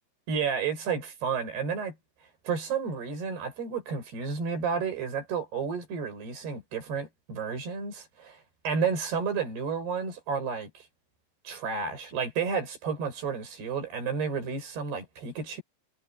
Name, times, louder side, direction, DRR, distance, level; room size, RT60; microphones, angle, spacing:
voice 1, 0.3-2.0 2.5-8.4 8.6-10.8 11.5-15.6, right 6 dB, 55° right, 9.1 m, -31 dB
omnidirectional pair, 5.5 m